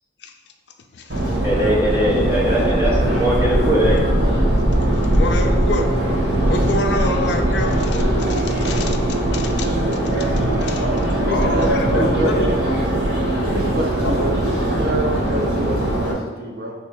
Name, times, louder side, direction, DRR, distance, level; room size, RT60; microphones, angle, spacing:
voice 1, 0.9-1.3 5.1-5.9 6.5-9.0 9.3-9.7 10.0-10.2 10.6-12.5 14.0-14.1, left 3 dB, 65° left, 4 dB, 0.4 m, -27 dB
Subway metro underground, 1.1-16.1, right 1 dB, 65° right, 1.4 m, -20 dB
voice 2, 1.4-4.1, equal, 15° right, -7 dB, 1.1 m, -20 dB
voice 3, 11.2-11.7 11.9-12.5 13.5-14.4 14.8-16.7, right 1 dB, 50° right, 0 dB, 0.6 m, -26 dB
3.6 x 3.3 x 4.5 m, 1.4 s
head